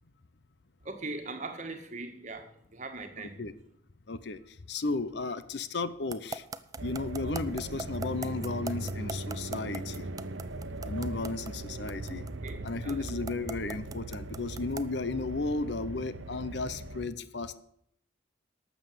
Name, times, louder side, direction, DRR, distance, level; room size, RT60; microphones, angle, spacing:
voice 1, 0.8-3.4 12.4-13.2, right 3 dB, 40° right, 1.6 m, -40 dB
voice 2, 3.2-3.5 4.1-4.4 4.7-6.4 6.8-10.1 10.8-12.2 12.6-17.6, left 3 dB, 60° left, 0.7 m, -34 dB
sound 1, 6.1-15.0, right 3 dB, 20° right, 0.5 m, -39 dB
sound 2, 6.8-17.1, right 2 dB, 90° right, 1.0 m, -39 dB
12.5 x 7.1 x 7.7 m
head